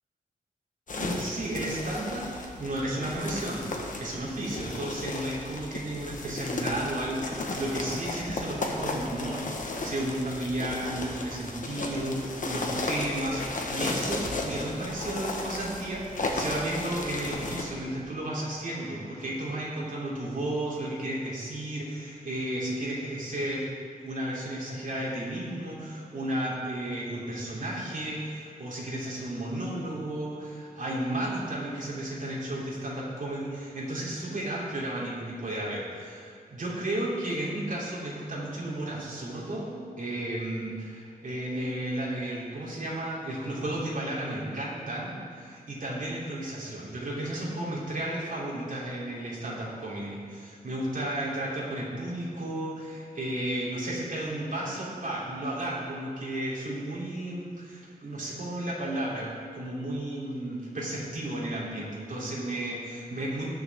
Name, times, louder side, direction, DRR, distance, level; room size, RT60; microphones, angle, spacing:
sound 1, 0.9-17.6, left 2 dB, 55° left, 1.4 m, -34 dB
voice 1, 0.9-2.3 2.6-3.7 4.0-23.7 24.0-63.5, right 1 dB, 60° right, -6 dB, 3.3 m, -33 dB
20.0 x 6.8 x 3.7 m, 2.3 s
wide cardioid pair, 115°, 16 cm